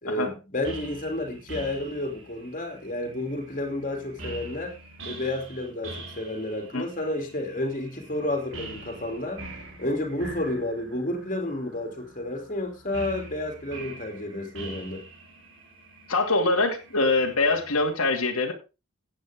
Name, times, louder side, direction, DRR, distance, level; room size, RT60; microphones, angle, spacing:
voice 1, 0.0-4.7 5.0-9.4 9.8-15.0, left 1 dB, 35° left, 2.9 m, -31 dB
sound 1, 0.6-17.9, right 1 dB, 65° right, 3.9 m, -44 dB
voice 2, 16.1-18.5, left 3 dB, 90° left, 2.5 m, -24 dB
14.5 x 9.3 x 3.7 m
head